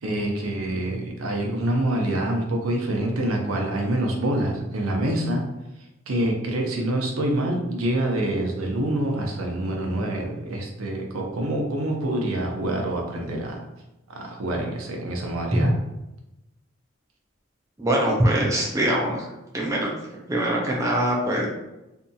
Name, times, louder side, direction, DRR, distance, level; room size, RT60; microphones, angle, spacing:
voice 1, 0.0-5.4 6.1-13.7 14.1-15.7, right 1 dB, 85° right, 1 dB, 0.6 m, -26 dB
voice 2, 17.8-19.9 20.3-21.5, right 1 dB, 15° right, -2 dB, 0.3 m, -23 dB
2.7 x 2.6 x 2.3 m, 0.96 s
head